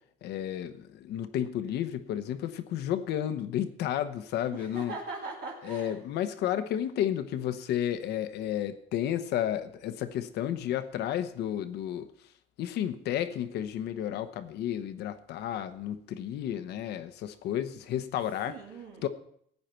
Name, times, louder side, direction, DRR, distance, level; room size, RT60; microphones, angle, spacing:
voice 1, 0.2-4.9 5.6-12.1 12.6-18.5 19.0-19.1, left 11 dB, 75° left, 10 dB, 1.0 m, -32 dB
voice 2, 4.5-6.0 18.5-19.1, right 3 dB, 70° right, -4 dB, 2.3 m, -40 dB
15.5 x 9.4 x 4.4 m, 0.68 s
cardioid pair, 110°, 17 cm